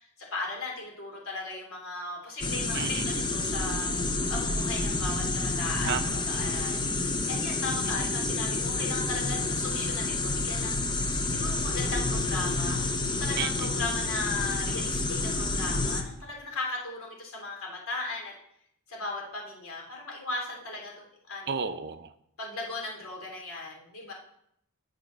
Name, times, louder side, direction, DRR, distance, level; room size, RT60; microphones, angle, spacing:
voice 1, 0.0-3.9 4.3-6.8 7.3-12.8 13.1-18.3 18.9-21.6 22.4-24.1, left 2 dB, 65° left, 0 dB, 3.1 m, -37 dB
sound 1, 2.4-16.0, left 3 dB, 20° left, 0.8 m, -29 dB
voice 2, 2.7-3.1 5.8-6.2 7.8-7.9 13.4-13.7 21.5-22.1, right 6 dB, 50° right, 11 dB, 0.6 m, -33 dB
9.5 x 6.5 x 6.3 m, 0.73 s
head